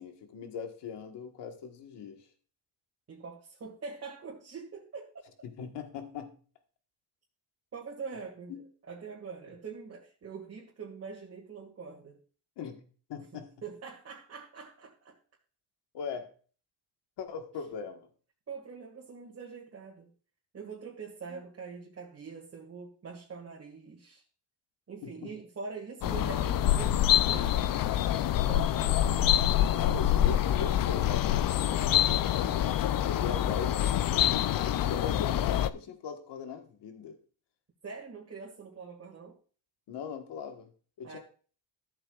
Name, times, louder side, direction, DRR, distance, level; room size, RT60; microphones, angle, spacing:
voice 1, 0.0-2.3 5.4-6.4 8.5-8.6 12.6-13.5 15.9-16.3 17.2-18.1 21.3-21.4 25.0-25.3 29.8-32.5 32.9-37.2 39.9-40.7 41.0-41.2, left 6 dB, 65° left, 1.6 m, -40 dB
voice 2, 3.1-5.2 7.7-8.5 8.8-12.2 13.3-15.2 18.5-20.1 20.5-24.2 24.9-26.9 27.3-27.7 28.2-28.7 37.8-39.4 41.0-41.2, right 5 dB, 35° right, 2.0 m, -44 dB
sound 1, 26.0-35.7, left 11 dB, 50° left, 0.5 m, -26 dB
13.5 x 7.8 x 2.4 m
cardioid pair, 125°, 44 cm